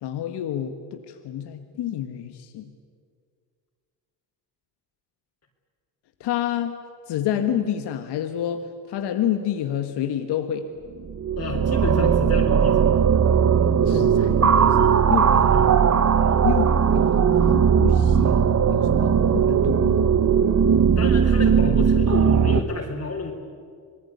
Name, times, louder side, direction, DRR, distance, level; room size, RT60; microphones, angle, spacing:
voice 1, 0.0-2.7 6.2-6.8 7.1-10.6 13.8-15.6 16.4-18.3 18.7-20.1, left 10 dB, 75° left, 7 dB, 1.7 m, -29 dB
sound 1, 11.0-22.6, right 7 dB, 40° right, 1.2 m, -18 dB
voice 2, 11.4-12.9 15.5-15.7 21.0-23.3, left 3 dB, 40° left, -2 dB, 4.0 m, -29 dB
26.5 x 19.5 x 9.6 m, 2.2 s
cardioid pair, 90°, 41 cm